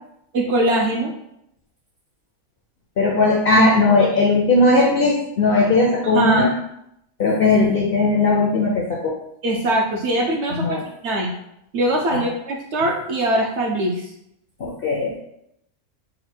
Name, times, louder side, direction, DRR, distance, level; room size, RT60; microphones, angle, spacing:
voice 1, 0.3-1.1 4.0-4.2 6.1-6.5 9.4-11.3 11.7-14.1, right 1 dB, 65° right, 1 dB, 0.7 m, -22 dB
voice 2, 3.0-6.5 7.2-9.2 10.5-10.8 12.1-12.2 14.8-15.2, left 2 dB, 60° left, -2 dB, 0.6 m, -18 dB
4.0 x 2.1 x 4.3 m, 0.79 s
omnidirectional pair, 1.5 m